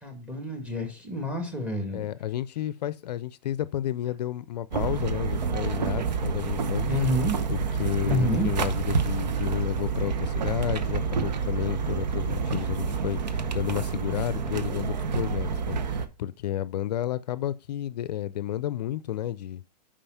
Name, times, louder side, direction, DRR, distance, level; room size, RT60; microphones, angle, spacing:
voice 1, 0.0-2.1 6.9-7.4 8.0-8.5, left 1 dB, 5° right, 1.8 m, -28 dB
voice 2, 1.9-6.9 7.5-19.6, left 12 dB, 75° left, 0.4 m, -31 dB
sound 1, 4.7-16.1, right 6 dB, 80° right, 0.9 m, -28 dB
5.4 x 5.0 x 5.6 m
hypercardioid pair, 115°, 21 cm